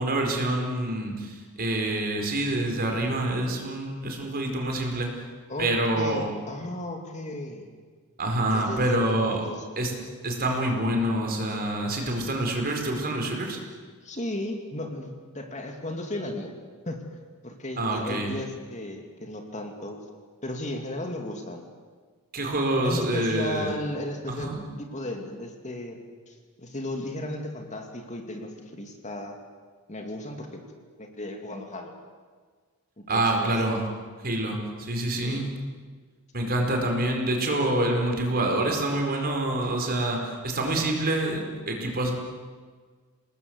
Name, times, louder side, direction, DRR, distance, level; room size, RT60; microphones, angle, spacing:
voice 1, 0.0-5.1 5.6-6.3 8.2-9.4 9.8-9.9 10.2-13.6 17.8-18.4 22.3-23.7 24.3-24.6 33.1-33.8 34.2-35.5 36.3-42.1, right 1 dB, 45° right, 2 dB, 4.7 m, -26 dB
voice 2, 5.5-7.7 8.5-9.6 14.0-16.5 16.9-17.0 17.4-20.0 20.4-21.7 22.8-26.0 26.3-29.4 29.9-30.6 31.0-31.9 33.0-33.5 35.2-35.5, left 1 dB, 35° left, 3 dB, 2.6 m, -35 dB
28.0 x 19.5 x 8.1 m, 1.5 s
head